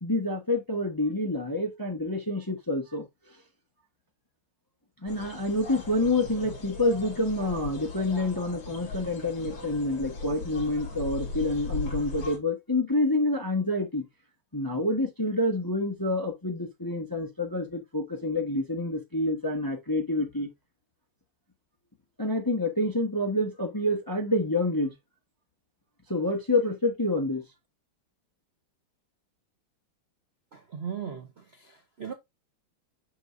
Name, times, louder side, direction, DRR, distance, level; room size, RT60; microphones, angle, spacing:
voice 1, 0.0-3.1 5.0-14.0 14.5-20.5 22.2-24.9 26.1-27.4, left 2 dB, 15° left, 0.8 m, -28 dB
sound 1, 5.1-12.4, left 3 dB, 60° left, 3.0 m, -38 dB
voice 2, 30.5-32.1, right 7 dB, 55° right, 0.6 m, -38 dB
6.3 x 6.3 x 2.6 m
omnidirectional pair, 2.4 m